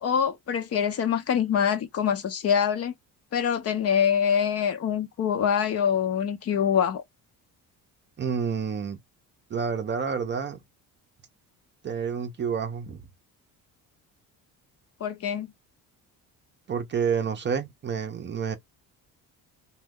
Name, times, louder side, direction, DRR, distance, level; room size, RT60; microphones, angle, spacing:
voice 1, 0.0-2.9 3.3-7.0 15.0-15.5, left 8 dB, 40° left, 0.5 m, -25 dB
voice 2, 8.2-9.0 9.5-10.6 11.8-13.0 16.7-18.6, right 6 dB, 30° right, 0.5 m, -29 dB
3.0 x 2.2 x 3.5 m
cardioid pair, 155°, 37 cm